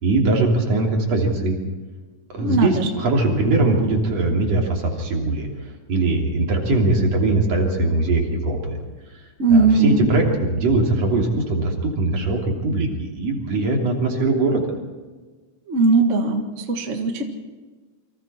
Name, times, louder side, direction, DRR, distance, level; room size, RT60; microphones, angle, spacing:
voice 1, 0.0-1.6 2.3-5.5 5.9-8.8 9.5-14.7, right 2 dB, 60° right, 0 dB, 4.3 m, -21 dB
voice 2, 2.4-2.9 9.4-10.1 15.7-17.3, right 3 dB, 30° right, 4 dB, 1.6 m, -19 dB
29.0 x 24.5 x 4.4 m, 1.4 s
omnidirectional pair, 3.4 m